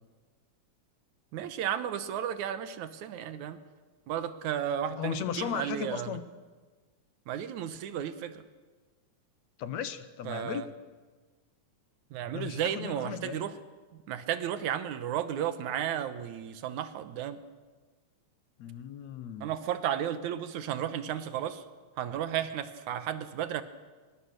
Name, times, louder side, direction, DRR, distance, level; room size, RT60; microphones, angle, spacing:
voice 1, 1.3-3.6 4.1-6.2 7.3-8.4 10.3-10.7 12.1-13.6 14.1-17.4 19.4-21.6 22.0-23.6, right 10 dB, 85° right, 11 dB, 2.5 m, -33 dB
voice 2, 5.0-6.2 9.6-10.6 12.3-13.4 18.6-19.5, left 9 dB, 70° left, 12 dB, 2.2 m, -36 dB
24.5 x 22.0 x 6.6 m, 1.3 s
omnidirectional pair, 3.3 m